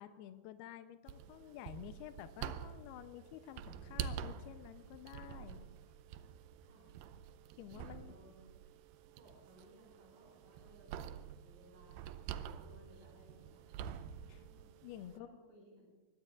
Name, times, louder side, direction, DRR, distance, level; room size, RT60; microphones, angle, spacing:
voice 1, 0.0-5.7 7.6-8.1 14.3-14.4 14.8-15.3, left 11 dB, 80° left, 9 dB, 2.7 m, -51 dB
sound 1, 1.1-15.2, right 8 dB, 80° right, 2.1 m, -48 dB
voice 2, 3.6-4.4 5.3-5.5 6.6-6.9 7.7-8.4 9.2-13.6 14.2-14.8 15.1-15.9, equal, 55° right, -3 dB, 8.4 m, -63 dB
23.5 x 21.0 x 2.5 m, 1.2 s
omnidirectional pair, 4.6 m